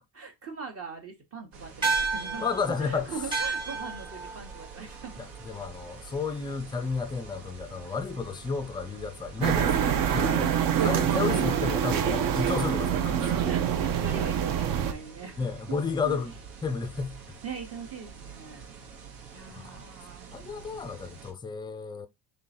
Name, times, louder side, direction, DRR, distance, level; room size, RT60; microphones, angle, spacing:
voice 1, 0.1-2.5 2.8-5.3 10.2-11.6 13.4-15.4 15.7-16.2 17.4-18.7 19.3-20.3, right 5 dB, 35° right, 1.1 m, -40 dB
sound 1, 1.5-21.3, right 6 dB, 85° right, 1.5 m, -46 dB
sound 2, 1.8-6.5, right 4 dB, 10° right, 1.1 m, -33 dB
voice 2, 2.4-3.2 5.2-10.5 10.8-13.3 15.4-17.2 19.5-19.8 20.3-22.1, left 5 dB, 10° left, 0.3 m, -32 dB
sound 3, 9.4-14.9, right 8 dB, 55° right, 0.7 m, -25 dB
3.8 x 3.3 x 4.2 m
cardioid pair, 145°, 41 cm